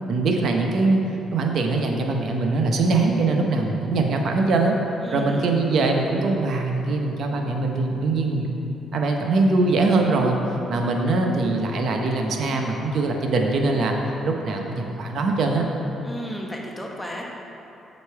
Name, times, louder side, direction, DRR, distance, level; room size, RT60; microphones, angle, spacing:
voice 1, 0.1-1.0 1.3-4.7 5.1-8.5 8.9-10.4 10.7-13.9 14.2-15.6, right 3 dB, 65° right, 2 dB, 0.8 m, -22 dB
voice 2, 5.0-5.6 16.0-17.2, equal, 10° left, -1 dB, 1.1 m, -33 dB
8.4 x 5.2 x 4.6 m, 3.0 s
cardioid pair, 90°, 0 cm